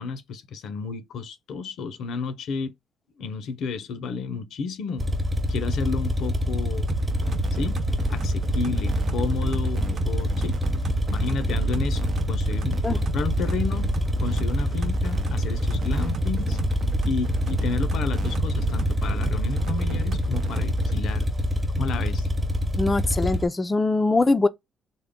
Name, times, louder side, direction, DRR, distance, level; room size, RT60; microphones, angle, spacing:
voice 1, 0.0-2.7 3.2-5.1 5.5-6.9 7.5-7.8 8.1-10.6 11.1-12.8 13.1-13.9 14.2-16.6 17.0-21.3 21.8-22.3, left 5 dB, 75° left, 0.5 m, -31 dB
sound 1, 5.0-23.5, left 1 dB, 15° right, 0.8 m, -26 dB
sound 2, 6.9-21.0, right 7 dB, 60° right, 0.5 m, -33 dB
voice 2, 22.8-24.5, left 3 dB, 25° left, 0.4 m, -22 dB
3.5 x 2.1 x 3.5 m
cardioid pair, 90°, 0 cm